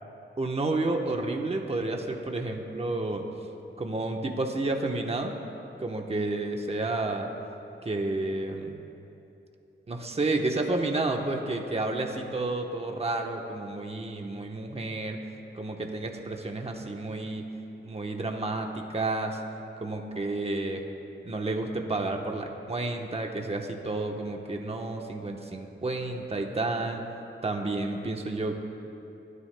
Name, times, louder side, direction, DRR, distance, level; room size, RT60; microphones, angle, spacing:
voice 1, 0.4-3.3 3.8-5.4 5.8-7.3 7.8-8.8 9.9-15.2 15.5-17.5 17.8-19.4 19.8-20.8 21.2-27.0 27.4-28.6, right 2 dB, 30° right, 2 dB, 1.0 m, -30 dB
26.0 x 9.6 x 2.2 m, 2.9 s
cardioid pair, 75°, 21 cm